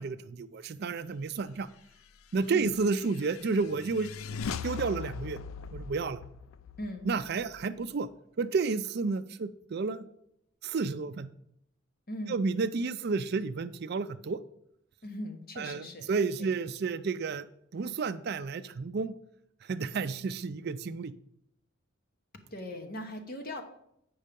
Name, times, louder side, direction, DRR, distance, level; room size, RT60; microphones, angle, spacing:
voice 1, 0.0-1.7 2.3-4.1 4.6-5.4 5.7-6.2 7.0-8.1 8.4-10.0 10.6-11.3 12.3-14.4 15.6-17.5 17.7-19.1 19.6-21.1, right 4 dB, 50° right, 12 dB, 0.4 m, -31 dB
sound 1, 2.3-8.0, left 6 dB, 80° left, 0.4 m, -41 dB
voice 2, 12.1-12.4 15.0-16.1 16.4-16.6 22.5-23.6, left 1 dB, 45° left, 6 dB, 1.2 m, -39 dB
8.6 x 5.4 x 5.2 m, 0.74 s
head